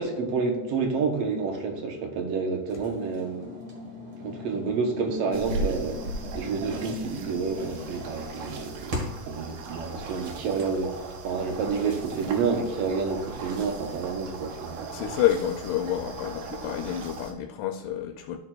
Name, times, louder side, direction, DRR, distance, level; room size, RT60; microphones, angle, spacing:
voice 1, 0.0-3.6 4.2-14.8, right 4 dB, 65° right, 1.6 m, -29 dB
sound 1, 2.7-9.4, left 1 dB, 45° right, 2.2 m, -39 dB
sound 2, 5.3-17.3, right 3 dB, 85° right, 2.5 m, -37 dB
voice 2, 14.9-18.4, left 11 dB, 85° left, 2.2 m, -28 dB
13.0 x 6.6 x 2.3 m
omnidirectional pair, 3.8 m